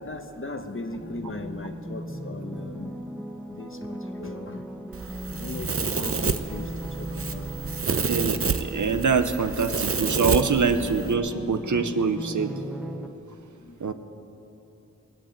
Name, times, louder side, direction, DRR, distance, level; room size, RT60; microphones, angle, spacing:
voice 1, 0.0-2.9 3.5-4.7 5.3-7.5 13.6-13.8, left 2 dB, 45° left, 7 dB, 1.1 m, -37 dB
sound 1, 1.0-13.1, equal, ahead, 1.1 m, -38 dB
Domestic sounds home sounds, 4.9-11.1, right 5 dB, 50° right, 0.6 m, -29 dB
voice 2, 8.1-12.5 13.8-13.9, right 5 dB, 85° right, 8 dB, 0.8 m, -24 dB
20.5 x 7.5 x 8.9 m, 2.9 s
wide cardioid pair, 65°, 29 cm